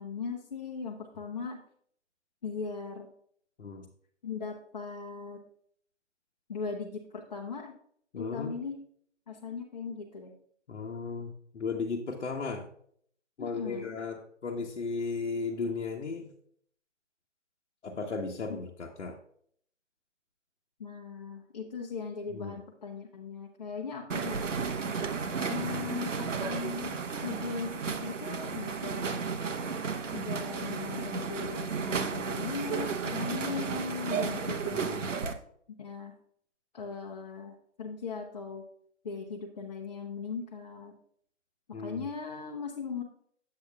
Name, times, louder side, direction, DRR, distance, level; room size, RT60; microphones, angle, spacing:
voice 1, 0.0-1.6 2.4-3.1 4.2-5.4 6.5-7.7 8.1-8.8 9.3-10.3 13.4-13.9 18.5-18.6 20.8-24.5 25.5-29.2 30.1-34.8 35.7-36.1 36.7-38.6 39.0-41.0 41.7-43.0, left 5 dB, 35° left, -1 dB, 0.8 m, -38 dB
voice 2, 8.1-8.5 10.7-12.6 13.4-16.3 17.8-19.2 22.3-22.6 25.6-25.7 34.7-35.1 41.7-42.0, left 4 dB, 75° left, 0 dB, 1.1 m, -35 dB
sound 1, 24.1-35.3, right 5 dB, 80° right, 1.0 m, -33 dB
8.7 x 7.8 x 2.3 m, 0.64 s
hypercardioid pair, 155°, 37 cm